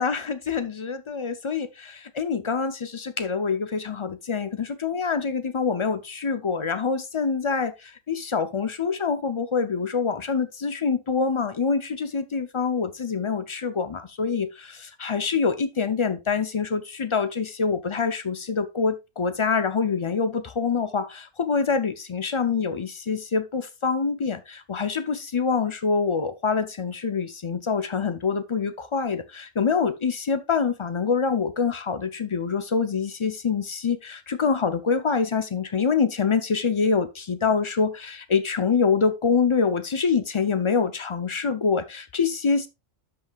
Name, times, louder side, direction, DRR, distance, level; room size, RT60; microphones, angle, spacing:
voice 1, 0.0-42.7, left 5 dB, 50° left, 0.3 m, -25 dB
13.0 x 5.5 x 2.3 m
omnidirectional pair, 1.4 m